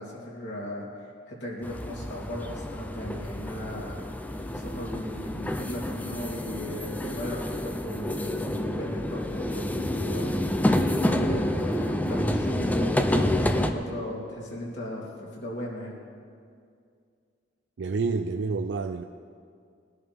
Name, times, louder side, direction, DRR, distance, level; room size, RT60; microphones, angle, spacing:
voice 1, 0.0-4.0 4.5-10.4 11.0-16.0, left 1 dB, 65° left, -4 dB, 3.1 m, -37 dB
sound 1, 1.6-13.7, left 1 dB, 10° left, 0.5 m, -28 dB
voice 2, 17.8-19.0, right 4 dB, 70° right, 7 dB, 0.4 m, -28 dB
20.5 x 11.0 x 3.5 m, 2.2 s
head